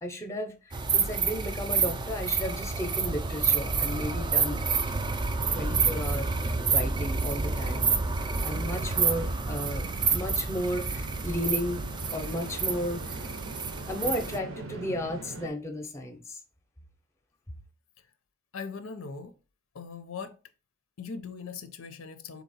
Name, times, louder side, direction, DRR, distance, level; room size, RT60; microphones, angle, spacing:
voice 1, 0.0-4.7 5.5-6.3 6.7-7.9 8.4-13.0 13.9-16.4, equal, 15° left, 0.6 m, -34 dB
sound 1, 0.7-14.4, right 4 dB, 20° right, 0.3 m, -28 dB
sound 2, 5.4-15.5, right 3 dB, 80° right, 0.7 m, -43 dB
voice 2, 18.5-19.3 19.7-20.4 21.0-22.4, left 5 dB, 80° left, 0.6 m, -40 dB
4.0 x 2.8 x 4.1 m
head